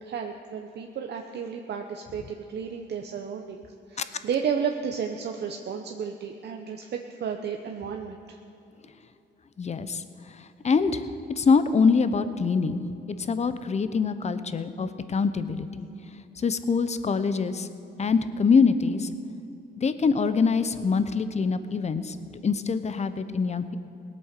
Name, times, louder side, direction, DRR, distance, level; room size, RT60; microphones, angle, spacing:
voice 1, 0.0-8.4, right 7 dB, 55° right, 4 dB, 0.9 m, -33 dB
voice 2, 9.6-10.0 10.3-12.8 13.2-15.9 16.4-17.7 18.0-19.1 19.8-22.2 22.4-23.8, left 5 dB, 35° left, 12 dB, 0.8 m, -24 dB
18.5 x 8.6 x 6.7 m, 2.9 s
cardioid pair, 90°, 20 cm